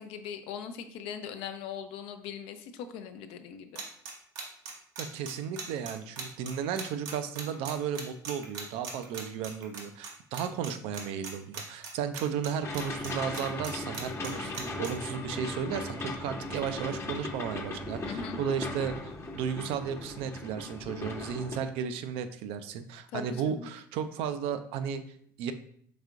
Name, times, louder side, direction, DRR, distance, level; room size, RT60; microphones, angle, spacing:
voice 1, 0.0-3.8 18.0-18.4 23.1-23.7, left 7 dB, 65° left, 8 dB, 0.4 m, -40 dB
sound 1, 3.7-10.1 10.3-10.7 10.9-12.5 12.7-14.9, right 5 dB, 80° right, 0.8 m, -39 dB
voice 2, 5.0-25.0 25.4-25.5, right 7 dB, 65° right, 10 dB, 0.4 m, -34 dB
sound 2, 12.6-21.6, left 2 dB, 25° left, 0.7 m, -38 dB
4.8 x 3.5 x 2.4 m, 0.63 s
hypercardioid pair, 65°, 11 cm